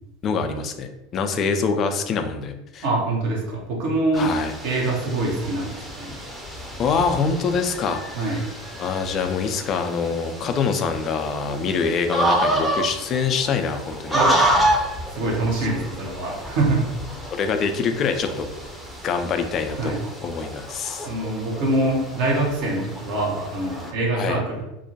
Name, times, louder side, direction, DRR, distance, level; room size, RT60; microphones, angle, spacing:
voice 1, 0.2-2.9 4.1-4.5 6.8-8.5 8.8-14.2 17.3-18.5 19.0-21.1 24.2-24.4, left 5 dB, 40° left, 7 dB, 0.3 m, -25 dB
voice 2, 2.8-4.3 4.6-6.1 8.1-8.4 14.1-14.6 15.1-16.8 19.8-20.0 21.0-24.6, right 2 dB, 60° right, -1 dB, 0.8 m, -24 dB
sound 1, 4.1-23.9, right 1 dB, 5° right, 0.6 m, -29 dB
2.5 x 2.1 x 2.7 m, 0.93 s
figure-of-eight pair, 80°, 0 cm